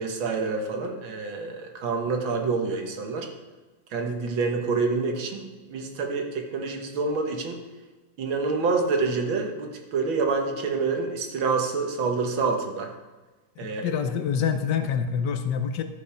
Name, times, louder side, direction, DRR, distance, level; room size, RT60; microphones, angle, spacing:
voice 1, 0.0-3.3 3.9-7.6 8.2-12.9 13.6-14.0, right 4 dB, 90° right, 3 dB, 2.1 m, -27 dB
voice 2, 13.6-15.8, left 7 dB, 70° left, 8 dB, 1.2 m, -26 dB
13.5 x 5.3 x 5.8 m, 1.2 s
omnidirectional pair, 2.1 m